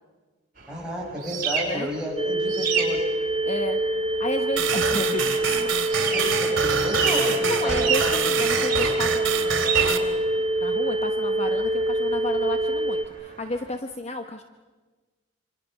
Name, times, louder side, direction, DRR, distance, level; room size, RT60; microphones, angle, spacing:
sound 1, 0.6-13.7, right 6 dB, 50° right, 5.2 m, -32 dB
voice 1, 0.7-3.1 6.1-8.2, equal, 5° right, -3 dB, 6.4 m, -32 dB
sound 2, 2.2-13.1, right 1 dB, 30° right, 0.9 m, -25 dB
voice 2, 3.4-3.8 4.2-5.7 7.4-14.4, left 2 dB, 35° left, 6 dB, 1.0 m, -32 dB
sound 3, 4.6-10.0, right 6 dB, 85° right, 2.7 m, -26 dB
26.5 x 25.5 x 6.5 m, 1.3 s
head